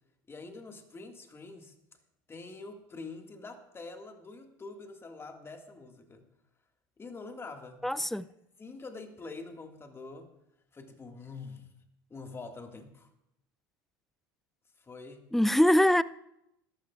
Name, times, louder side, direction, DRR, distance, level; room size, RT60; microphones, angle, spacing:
voice 1, 0.3-1.7 2.3-6.2 7.0-7.9 8.6-10.3 10.7-11.7 12.1-13.1 14.8-15.3, left 3 dB, 20° left, 1.9 m, -45 dB
voice 2, 7.8-8.3 15.3-16.0, left 1 dB, ahead, 0.4 m, -23 dB
21.5 x 11.5 x 2.4 m
hypercardioid pair, 80°, 12 cm